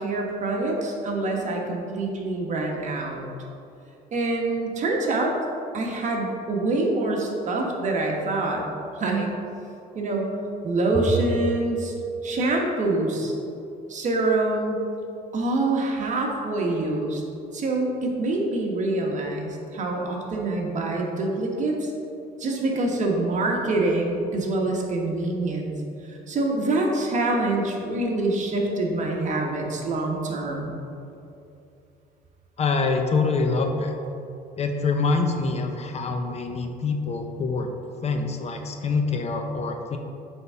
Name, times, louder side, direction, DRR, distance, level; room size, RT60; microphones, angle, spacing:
voice 1, 0.0-3.2 4.1-5.3 5.7-8.6 9.0-9.3 9.9-10.3 10.6-11.9 12.2-13.3 13.9-14.8 15.3-17.2 17.5-21.9 22.4-25.7 26.1-30.8, right 2 dB, 45° right, 0 dB, 1.3 m, -25 dB
voice 2, 32.6-34.0 34.6-37.7 38.0-40.0, left 4 dB, 40° left, 5 dB, 0.6 m, -25 dB
7.9 x 3.7 x 5.6 m, 2.7 s
cardioid pair, 110°, 17 cm